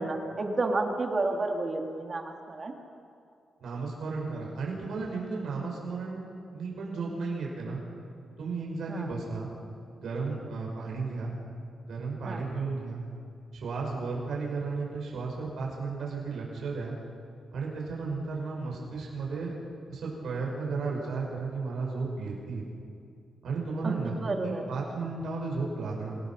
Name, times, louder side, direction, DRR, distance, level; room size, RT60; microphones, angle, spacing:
voice 1, 0.0-2.7 8.9-9.1 12.2-12.4 23.8-24.6, right 2 dB, 35° right, 3 dB, 1.8 m, -31 dB
voice 2, 3.6-6.2 6.5-7.8 8.4-9.5 10.0-11.3 11.8-13.0 13.5-16.9 17.5-19.5 19.9-22.7 23.4-24.1 24.4-26.2, right 4 dB, 75° right, -3 dB, 5.9 m, -34 dB
27.5 x 17.5 x 5.9 m, 2.4 s
wide cardioid pair, 130°, 0 cm